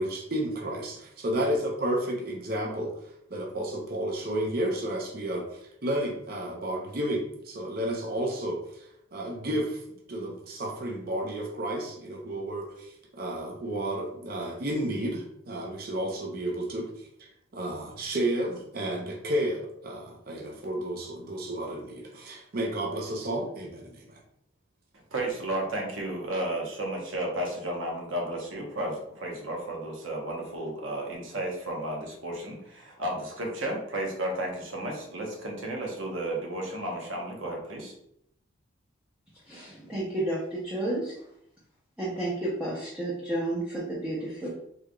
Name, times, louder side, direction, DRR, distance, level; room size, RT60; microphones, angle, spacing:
voice 1, 0.0-2.9 3.3-8.8 9.1-9.8 10.1-17.1 17.5-24.2, right 1 dB, 45° right, 0 dB, 0.6 m, -32 dB
voice 2, 25.1-37.9, right 1 dB, 75° right, 0 dB, 1.0 m, -33 dB
voice 3, 39.5-41.2 42.0-44.5, right 1 dB, 5° right, -7 dB, 0.6 m, -31 dB
3.7 x 3.4 x 2.2 m, 0.72 s
head